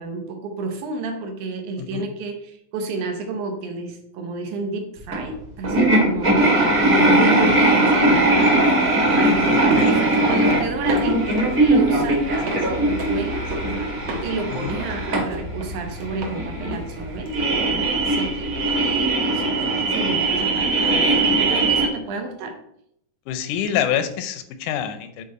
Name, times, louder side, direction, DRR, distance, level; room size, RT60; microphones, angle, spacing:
voice 1, 0.0-22.6, right 3 dB, 80° right, 5 dB, 2.5 m, -31 dB
sound 1, 5.1-5.2 5.6-21.9, right 2 dB, 30° right, 1.7 m, -20 dB
sound 2, 8.2-19.1, right 2 dB, 60° right, 1.9 m, -35 dB
voice 2, 9.5-10.0 14.5-14.8 23.3-25.2, left 9 dB, 85° left, 10 dB, 2.2 m, -26 dB
8.2 x 4.2 x 4.2 m, 0.73 s
omnidirectional pair, 3.5 m